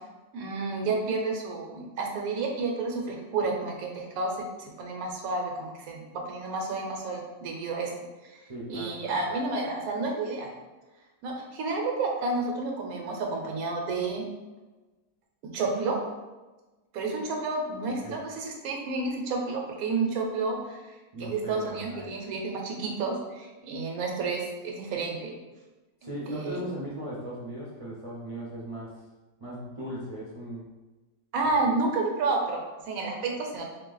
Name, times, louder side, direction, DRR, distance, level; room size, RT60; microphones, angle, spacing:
voice 1, 0.3-7.9 8.2-8.4 8.7-10.5 11.2-14.2 15.5-16.0 16.9-25.3 26.3-26.6 31.3-33.6, right 3 dB, 80° right, 1 dB, 1.2 m, -30 dB
voice 2, 8.5-9.2 18.0-18.2 21.1-22.1 26.0-29.0 29.4-30.7, right 1 dB, 50° right, -7 dB, 0.4 m, -38 dB
3.2 x 2.8 x 3.8 m, 1.2 s
omnidirectional pair, 1.5 m